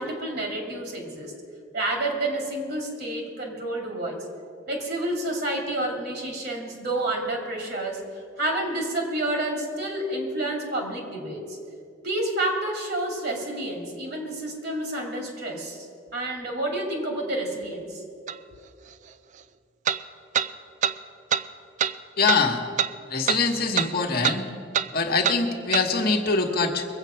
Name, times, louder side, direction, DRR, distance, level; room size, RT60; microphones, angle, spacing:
voice 1, 0.0-1.3 1.7-4.2 4.7-8.0 8.4-11.6 12.0-18.0, right 1 dB, 55° right, 1 dB, 2.4 m, -29 dB
sound 1, 18.3-18.4 19.9-20.0 20.4-20.5 20.8-21.0 21.3-21.5 21.8-21.9 22.3-22.4 22.8-22.9 23.3-23.4 23.8-23.9 24.2-24.4 24.7-24.9 25.2-25.4 25.7-25.9, right 9 dB, 40° right, 0.3 m, -24 dB
voice 2, 22.2-22.6 23.1-24.5 24.9-26.9, left 4 dB, 50° left, 2 dB, 1.2 m, -23 dB
22.0 x 8.1 x 5.7 m, 2.4 s
head